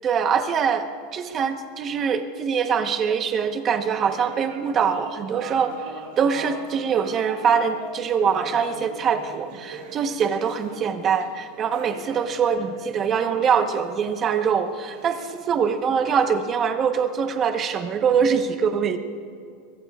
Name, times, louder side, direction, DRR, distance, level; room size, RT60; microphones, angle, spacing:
voice 1, 0.0-5.7 6.2-19.0, right 6 dB, 25° right, 6 dB, 1.0 m, -23 dB
sound 1, 3.7-17.4, right 3 dB, 65° right, 5.3 m, -42 dB
25.0 x 23.5 x 2.4 m, 2.4 s
supercardioid pair, 165°, 0 cm